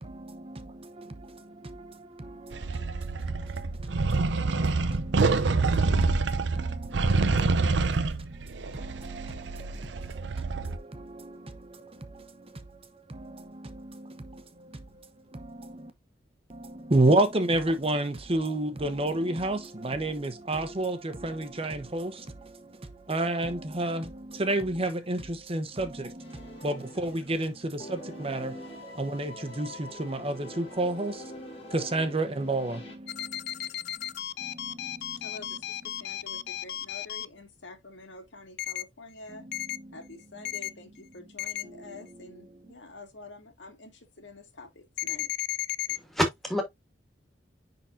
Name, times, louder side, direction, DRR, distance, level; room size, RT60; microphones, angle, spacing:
voice 1, 0.0-3.9 4.4-6.1 6.5-8.1 8.7-12.5 13.1-14.8 15.3-15.9 16.5-31.3 31.6-33.7 34.4-35.2 39.7-39.8 41.7-41.8, right 2 dB, 30° right, 1.0 m, -32 dB
sound 1, 2.5-10.8, right 3 dB, 75° right, 0.6 m, -27 dB
sound 2, 26.2-27.5 27.8-32.9, left 1 dB, 35° left, 3.1 m, -45 dB
sound 3, 33.1-37.2 38.6-38.8 39.5-39.8 40.4-40.7 41.4-41.6 45.0-46.0, left 14 dB, 60° left, 0.4 m, -34 dB
voice 2, 35.2-39.5 39.9-45.3, left 2 dB, 85° left, 2.1 m, -48 dB
voice 3, 45.9-46.6, equal, ahead, 2.2 m, -28 dB
10.0 x 4.0 x 2.6 m
head